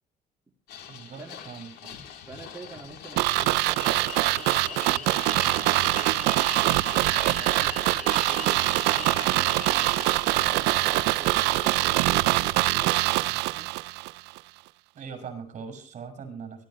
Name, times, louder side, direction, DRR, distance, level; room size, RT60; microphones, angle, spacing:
sound 1, 0.7-13.2, left 8 dB, 80° left, 4.2 m, -43 dB
voice 1, 0.9-1.9 15.0-16.7, right 6 dB, 45° right, 5 dB, 7.1 m, -41 dB
voice 2, 2.3-6.3 6.9-10.0 10.4-13.7, right 3 dB, 15° right, -2 dB, 3.2 m, -47 dB
sound 2, 3.2-14.1 14.4-14.5, right 19 dB, 90° right, 0.6 m, -24 dB
sound 3, 3.7-10.1, left 7 dB, 50° left, 2.4 m, -40 dB
22.5 x 13.5 x 3.3 m, 0.43 s
cardioid pair, 110°, 17 cm